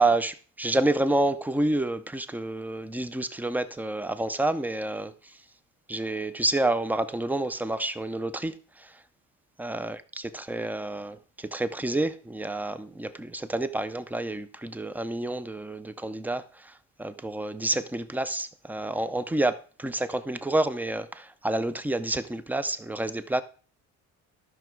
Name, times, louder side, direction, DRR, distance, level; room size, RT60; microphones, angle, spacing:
voice 1, 0.0-5.3 5.9-9.0 9.6-23.4, right 2 dB, 5° right, 0.6 m, -29 dB
13.0 x 6.0 x 4.6 m
cardioid pair, 145°, 31 cm